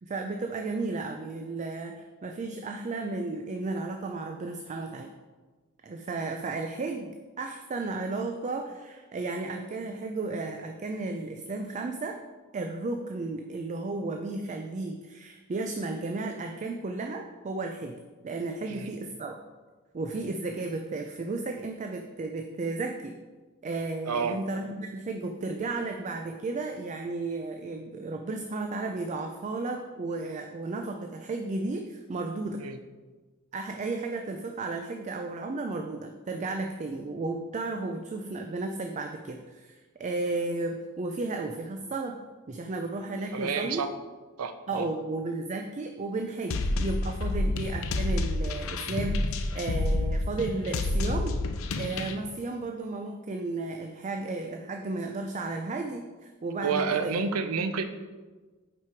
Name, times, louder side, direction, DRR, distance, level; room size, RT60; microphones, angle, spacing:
voice 1, 0.0-5.1 5.8-12.1 12.5-18.0 18.2-19.4 19.9-23.2 23.6-32.6 33.5-42.2 42.5-43.9 44.7-51.4 51.8-57.2, right 3 dB, 35° right, 4 dB, 0.4 m, -33 dB
voice 2, 24.0-24.4 32.6-32.8 43.3-43.9 44.4-44.9 47.3-47.5 56.6-57.8, right 5 dB, 80° right, 9 dB, 0.6 m, -29 dB
sound 1, 46.5-52.2, left 2 dB, 65° left, 0.5 m, -29 dB
5.6 x 5.3 x 4.5 m, 1.3 s
head